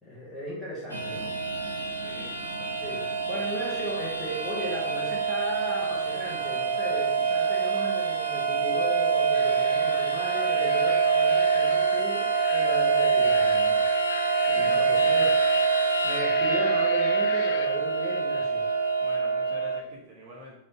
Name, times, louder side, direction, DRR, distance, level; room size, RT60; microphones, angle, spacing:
voice 1, 0.0-1.3 2.8-3.0 3.3-13.9 14.5-15.3 16.0-18.6, equal, ahead, -8 dB, 1.3 m, -36 dB
sound 1, 0.9-19.8, right 5 dB, 75° right, 0.5 m, -25 dB
voice 2, 1.9-2.7 14.4-15.4 19.0-20.5, equal, 40° right, -4 dB, 1.7 m, -45 dB
sound 2, 9.3-17.7, left 8 dB, 50° left, 0.3 m, -41 dB
4.9 x 2.5 x 4.1 m, 0.78 s
figure-of-eight pair, 90°, 0 cm